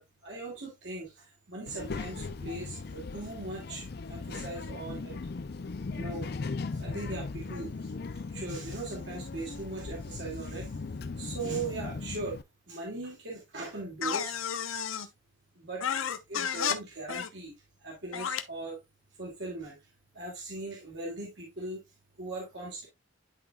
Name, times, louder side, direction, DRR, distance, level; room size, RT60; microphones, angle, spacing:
voice 1, 0.0-5.2 5.9-6.3 6.7-7.9 8.3-10.7 11.2-12.4 12.7-14.4 15.0-15.1 15.6-15.8 16.3-17.5 17.8-18.8 19.2-19.8 20.1-21.8 22.2-22.9, right 3 dB, 65° right, 2.1 m, -39 dB
Child speech kid speaking, 1.7-12.4, left 4 dB, 50° left, 0.5 m, -38 dB
sound 1, 14.0-15.1 15.8-16.8 17.1-17.3 18.1-18.4, left 7 dB, 90° left, 0.7 m, -31 dB
11.5 x 4.0 x 2.3 m
head